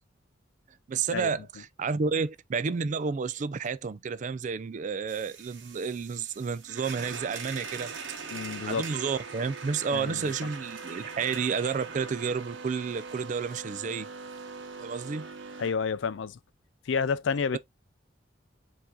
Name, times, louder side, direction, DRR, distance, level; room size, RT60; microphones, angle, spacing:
voice 1, 0.9-7.9 8.7-14.1 14.8-15.3, right 5 dB, 40° right, 0.4 m, -31 dB
sound 1, 5.1-15.7, right 5 dB, 75° right, 1.0 m, -41 dB
voice 2, 8.3-8.9 9.9-10.3 15.6-16.4 16.9-17.6, left 5 dB, 70° left, 0.4 m, -29 dB
4.7 x 2.7 x 3.7 m
head